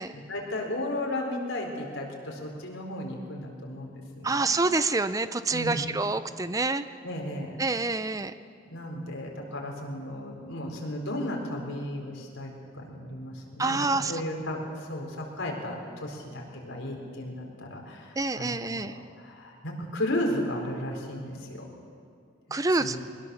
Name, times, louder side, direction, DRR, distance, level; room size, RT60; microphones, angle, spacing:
voice 1, 0.1-4.5 5.5-5.8 7.0-7.6 8.7-21.7 22.8-23.0, left 1 dB, 80° left, 0 dB, 4.5 m, -34 dB
voice 2, 4.2-6.8 7.6-8.3 13.6-14.2 18.2-19.0 22.5-23.0, right 3 dB, 15° right, 12 dB, 0.5 m, -27 dB
22.0 x 20.0 x 7.1 m, 2.3 s
head